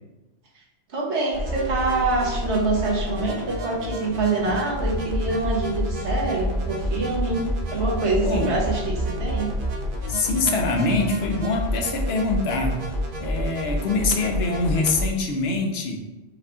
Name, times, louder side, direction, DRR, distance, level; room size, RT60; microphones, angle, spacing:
voice 1, 0.9-7.4 7.7-9.5, right 2 dB, 80° right, -4 dB, 1.4 m, -25 dB
sound 1, 1.3-15.0, equal, 55° right, 0.9 m, -29 dB
voice 2, 8.2-8.6 10.1-12.9 13.2-16.0, left 3 dB, 70° left, 2 dB, 0.9 m, -24 dB
5.4 x 2.3 x 3.6 m, 1.1 s
omnidirectional pair, 1.1 m